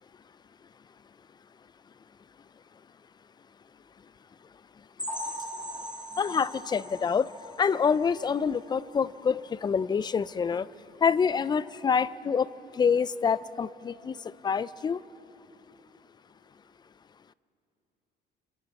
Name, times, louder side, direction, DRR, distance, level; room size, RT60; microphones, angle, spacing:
sound 1, 5.0-8.6 9.0-9.2 9.5-9.6 10.1-10.2, equal, 5° right, 3.1 m, -40 dB
voice 1, 6.2-7.3 7.6-10.7 11.0-12.5 12.8-14.2 14.4-15.0, left 6 dB, 25° left, 18 dB, 0.4 m, -26 dB
30.0 x 24.5 x 4.2 m, 3.0 s
cardioid pair, 110°, 17 cm